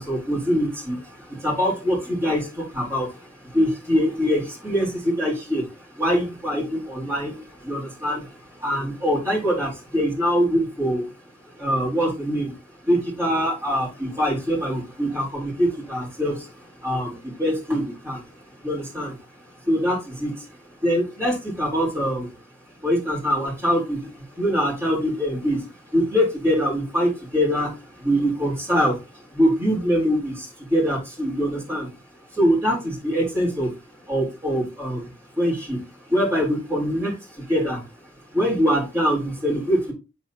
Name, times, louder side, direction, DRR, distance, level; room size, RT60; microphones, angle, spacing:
voice 1, 0.0-12.6 12.8-20.3 20.7-22.3 22.8-31.9 32.3-39.9, equal, 10° right, -4 dB, 3.7 m, -24 dB
9.8 x 4.2 x 2.8 m, 0.28 s
head